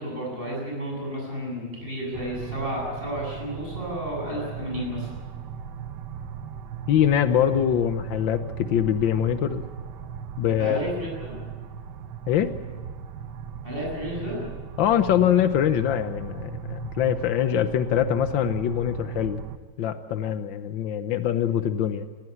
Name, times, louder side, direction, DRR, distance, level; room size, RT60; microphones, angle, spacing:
voice 1, 0.0-5.1 10.6-11.3 13.6-14.4, equal, 25° right, -2 dB, 8.3 m, -32 dB
sound 1, 2.1-19.6, right 7 dB, 70° right, 1.5 m, -37 dB
voice 2, 6.9-9.6 10.4-10.8 12.3-12.5 14.8-19.4 19.8-22.1, left 10 dB, 85° left, 11 dB, 1.7 m, -23 dB
19.0 x 15.5 x 9.9 m, 1.5 s
omnidirectional pair, 2.0 m